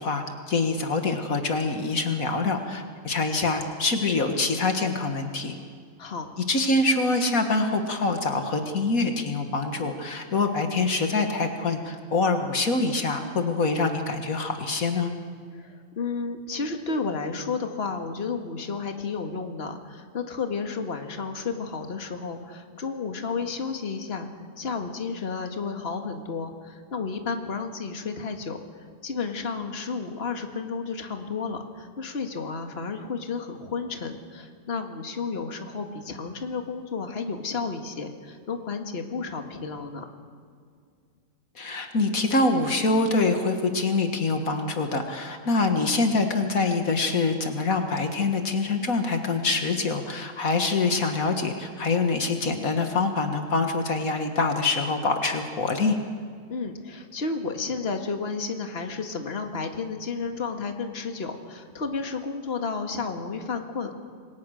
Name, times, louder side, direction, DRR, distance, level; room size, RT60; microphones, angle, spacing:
voice 1, 0.0-5.6 6.5-15.1 41.6-56.0, left 3 dB, 70° left, 5 dB, 2.1 m, -25 dB
voice 2, 6.0-6.3 15.5-24.3 24.6-40.1 56.5-63.9, left 4 dB, 45° left, 5 dB, 2.0 m, -32 dB
28.0 x 22.5 x 6.5 m, 2.2 s
omnidirectional pair, 1.5 m